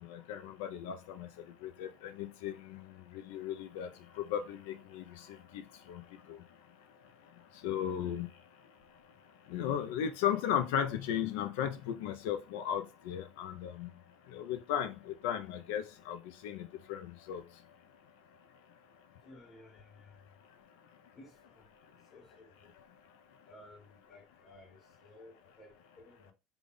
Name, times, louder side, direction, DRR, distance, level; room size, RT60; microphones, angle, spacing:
voice 1, 0.0-1.3 1.6-3.9 4.1-6.4 7.6-8.3 9.5-13.9 14.3-17.4, left 9 dB, 80° left, 0.6 m, -36 dB
voice 2, 19.2-20.1 21.1-21.3 21.6-21.7 22.1-22.7 23.5-26.3, left 1 dB, 45° left, 1.6 m, -56 dB
3.4 x 2.3 x 3.8 m
supercardioid pair, 105°, 0 cm